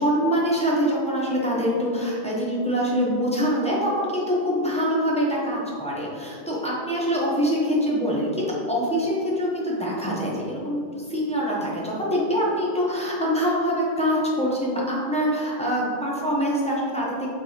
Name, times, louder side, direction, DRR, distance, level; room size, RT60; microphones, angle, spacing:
voice 1, 0.0-17.3, equal, 5° left, -5 dB, 0.7 m, -24 dB
4.6 x 4.0 x 2.8 m, 2.2 s
omnidirectional pair, 1.1 m